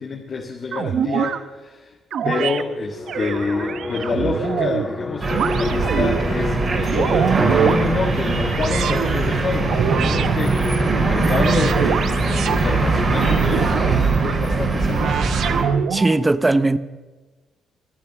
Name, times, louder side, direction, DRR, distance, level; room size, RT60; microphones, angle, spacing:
voice 1, 0.0-2.0 2.2-15.4, left 4 dB, 50° left, 1.7 m, -28 dB
sound 1, 0.7-1.4 2.1-2.6 3.1-4.9 5.3-6.2 6.7-7.8 8.5-9.1 9.7-10.3 10.8-12.6 13.1-14.4 14.9-16.2, right 8 dB, 70° right, 0.8 m, -24 dB
sound 2, 2.6-14.0, left 2 dB, 25° left, 2.3 m, -31 dB
sound 3, 5.2-15.6, right 3 dB, 40° right, 4.9 m, -21 dB
voice 2, 15.9-16.8, right 2 dB, 15° right, 0.7 m, -18 dB
24.0 x 8.6 x 6.0 m
cardioid pair, 90°, 0 cm